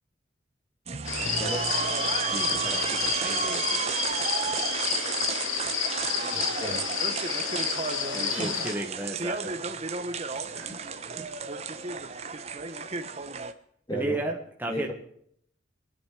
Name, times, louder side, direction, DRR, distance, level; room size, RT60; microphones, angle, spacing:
sound 1, 0.9-13.5, right 5 dB, 35° right, 1.0 m, -32 dB
voice 1, 1.0-1.7 6.3-6.9 8.3-8.5 11.2-11.3 13.9-14.3 14.7-14.9, equal, 20° left, 2 dB, 3.0 m, -35 dB
sound 2, 1.1-8.7, left 7 dB, 85° left, 2.0 m, -30 dB
voice 2, 2.3-3.8 8.1-9.5 10.5-10.8 13.9-14.9, right 1 dB, 10° right, 1 dB, 1.3 m, -34 dB
25.0 x 9.8 x 4.9 m, 0.66 s
head